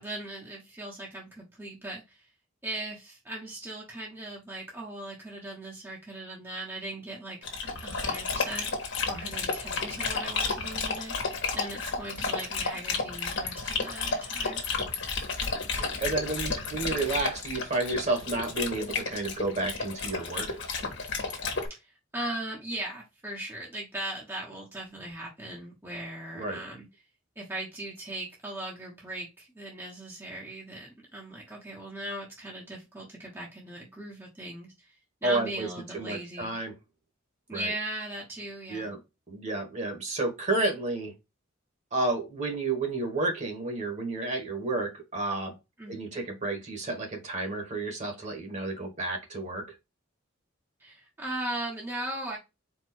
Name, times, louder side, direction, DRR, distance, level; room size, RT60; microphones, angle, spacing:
voice 1, 0.0-2.2 2.6-7.4 7.8-8.7 9.1-14.6 21.7-26.9 27.4-34.9 35.2-36.6 37.5-38.9 45.8-46.2 50.8-52.4, right 1 dB, 10° right, 1.2 m, -38 dB
Dog, 7.4-21.7, left 4 dB, 65° left, 1.5 m, -32 dB
voice 2, 15.8-20.6 26.3-26.6 35.2-35.7 35.9-36.7 37.5-37.7 38.7-39.0 39.3-41.1 41.9-45.5 45.9-49.6, right 2 dB, 35° right, 1.7 m, -31 dB
4.6 x 2.6 x 4.3 m
head